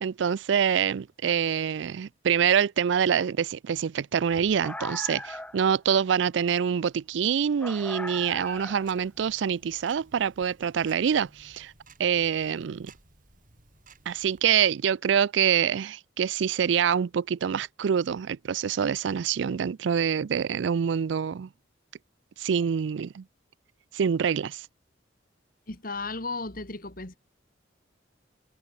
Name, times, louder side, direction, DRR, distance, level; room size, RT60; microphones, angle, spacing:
voice 1, 0.0-11.7 12.0-12.9 14.1-21.5 22.4-23.2 23.9-24.7, right 7 dB, 70° right, 0.4 m, -26 dB
sound 1, 4.3-5.7 7.6-9.0, left 1 dB, 5° left, 3.4 m, -39 dB
Tick-tock, 8.2-14.4, right 4 dB, 45° right, 6.0 m, -57 dB
voice 2, 25.7-27.2, left 3 dB, 50° left, 3.1 m, -35 dB
head